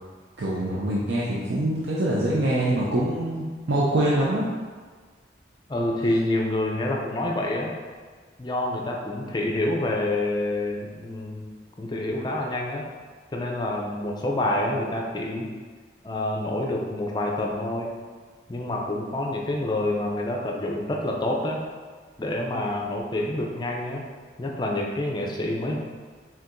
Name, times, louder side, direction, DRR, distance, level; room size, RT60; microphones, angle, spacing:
voice 1, 0.4-4.5, right 1 dB, 75° right, -6 dB, 0.6 m, -24 dB
voice 2, 5.7-7.7 8.4-11.4 11.8-12.8 13.3-15.5 16.0-17.9 18.5-21.6 22.2-24.0 24.4-25.8, left 1 dB, 25° left, 0 dB, 0.4 m, -27 dB
4.5 x 3.7 x 2.5 m, 1.5 s
head